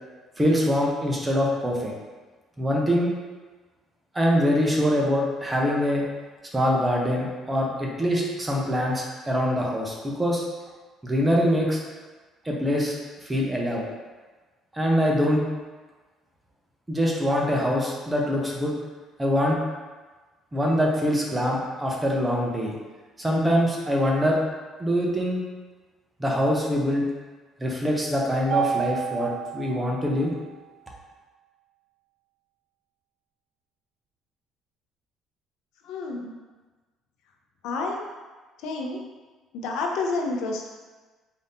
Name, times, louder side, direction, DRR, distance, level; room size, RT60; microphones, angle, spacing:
voice 1, 0.4-1.9 2.6-3.1 4.1-6.0 6.5-10.4 11.0-11.8 12.4-13.0 13.2-13.8 14.7-15.4 16.9-18.7 19.2-19.6 20.5-22.7 23.2-24.4 24.8-25.4 26.2-27.0 27.6-30.3, equal, 10° right, -2 dB, 0.6 m, -24 dB
Mallet percussion, 28.5-30.8, right 10 dB, 65° right, 0.4 m, -31 dB
voice 2, 35.8-36.3 37.6-38.0 38.6-39.0 39.5-40.7, left 3 dB, 75° left, 1 dB, 0.6 m, -29 dB
4.0 x 2.6 x 3.5 m, 1.3 s
cardioid pair, 155°, 0 cm